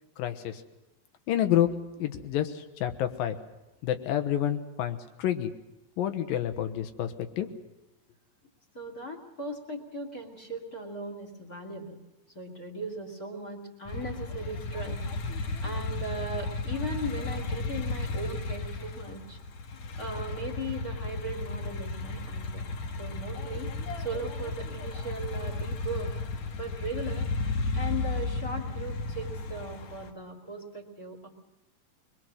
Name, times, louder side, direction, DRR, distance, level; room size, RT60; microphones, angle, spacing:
voice 1, 0.2-0.6 1.3-3.4 3.8-5.5 6.0-7.5, left 11 dB, 90° left, 8 dB, 3.0 m, -29 dB
voice 2, 8.7-12.0 12.3-15.0 15.6-19.4 19.9-22.7 23.0-23.7 24.0-26.1 26.5-27.3 27.7-31.3, right 1 dB, 30° left, 4 dB, 2.8 m, -38 dB
sound 1, 13.9-30.1, left 3 dB, 60° left, 2.5 m, -34 dB
25.0 x 21.5 x 6.4 m, 0.99 s
omnidirectional pair, 4.0 m